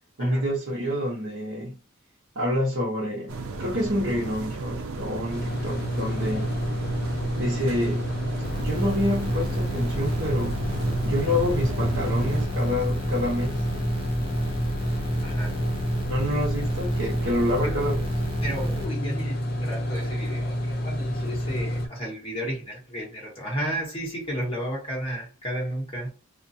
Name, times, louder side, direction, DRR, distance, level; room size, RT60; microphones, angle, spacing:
voice 1, 0.2-1.8 2.3-6.5 7.4-8.1 8.6-10.6 11.0-13.6 16.1-18.0, left 1 dB, 60° right, 0.9 m, -27 dB
sound 1, 3.3-12.5, right 3 dB, 80° right, 0.5 m, -34 dB
sound 2, 5.3-21.9, equal, 45° left, 0.6 m, -29 dB
sound 3, 8.4-18.8, right 1 dB, 25° right, 0.5 m, -31 dB
voice 2, 15.2-15.6 17.6-17.9 18.4-26.1, equal, 25° left, 1.1 m, -33 dB
2.4 x 2.3 x 2.7 m
head